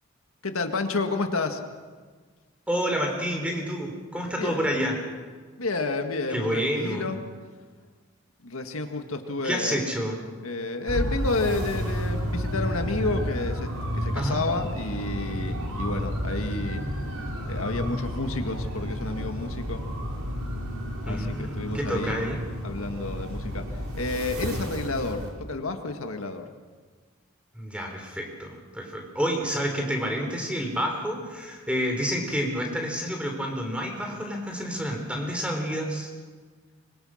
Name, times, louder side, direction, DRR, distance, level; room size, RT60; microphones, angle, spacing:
voice 1, 0.4-1.6 4.4-4.7 5.6-7.2 8.4-9.8 10.4-16.8 17.2-19.8 21.0-22.3 22.6-26.5, left 3 dB, 80° left, 6 dB, 1.8 m, -30 dB
voice 2, 2.7-4.9 6.3-7.2 9.4-10.2 14.1-14.4 21.0-22.4 27.5-36.1, equal, 5° right, 2 dB, 3.8 m, -29 dB
sound 1, 10.9-25.3, equal, 90° right, 4.6 m, -31 dB
25.0 x 22.5 x 6.5 m, 1.5 s
head